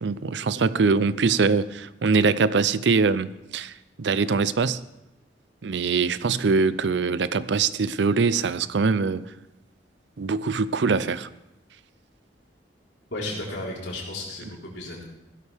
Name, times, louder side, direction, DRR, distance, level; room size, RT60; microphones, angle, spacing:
voice 1, 0.0-4.8 5.6-9.2 10.2-11.3, right 4 dB, 70° right, 16 dB, 0.5 m, -23 dB
voice 2, 13.1-15.0, left 2 dB, 70° left, -3 dB, 4.0 m, -34 dB
16.0 x 12.5 x 3.5 m, 0.90 s
head